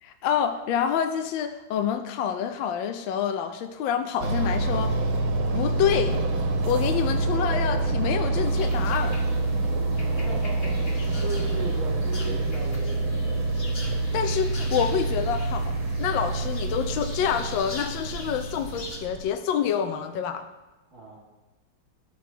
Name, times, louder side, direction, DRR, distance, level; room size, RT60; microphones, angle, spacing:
voice 1, 0.0-5.0 5.5-6.2 6.6-9.2 14.1-20.5, left 8 dB, 75° left, 7 dB, 1.3 m, -27 dB
sound 1, 4.2-19.3, right 2 dB, 80° right, 1.8 m, -27 dB
sound 2, 8.4-19.0, left 2 dB, 35° left, 1.2 m, -43 dB
voice 2, 9.6-10.9 11.2-13.3 20.9-21.2, right 3 dB, 45° right, -5 dB, 3.0 m, -38 dB
11.0 x 7.2 x 4.4 m, 1.1 s
omnidirectional pair, 2.2 m